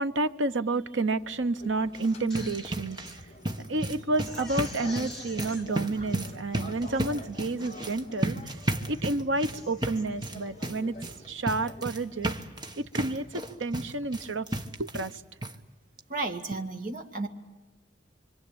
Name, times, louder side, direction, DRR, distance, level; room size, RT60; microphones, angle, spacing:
voice 1, 0.0-3.0 3.7-8.6 8.9-11.0 11.3-12.3 12.8-14.5 14.8-15.2, right 2 dB, 90° right, 11 dB, 1.0 m, -30 dB
sound 1, 1.1-12.3, left 1 dB, 35° left, 1.9 m, -48 dB
sound 2, 1.8-15.2 15.4-15.5 16.0-16.1 16.4-16.5, right 1 dB, 25° right, 1.3 m, -34 dB
Crying sobbing, 2.1-3.2 3.6-3.7 4.1-5.6 6.3-6.4 6.7-7.2 7.7-8.1 8.5-8.9 9.3-10.0 10.5-10.8, left 1 dB, ahead, 3.9 m, -47 dB
voice 2, 16.1-17.3, right 3 dB, 45° right, 5 dB, 2.2 m, -33 dB
26.0 x 26.0 x 8.8 m, 1.2 s
head